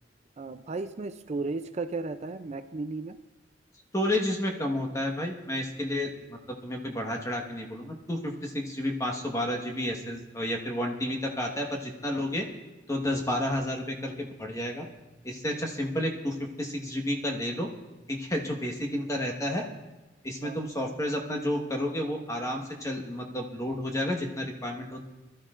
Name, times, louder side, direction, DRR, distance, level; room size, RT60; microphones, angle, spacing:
voice 1, 0.4-3.2 20.4-20.6, right 3 dB, 40° right, 9 dB, 0.4 m, -34 dB
voice 2, 3.9-12.5 12.9-14.8 15.2-17.7 18.1-19.6 20.2-25.0, left 1 dB, 20° left, 2 dB, 1.4 m, -31 dB
22.0 x 13.0 x 2.5 m, 1.1 s
head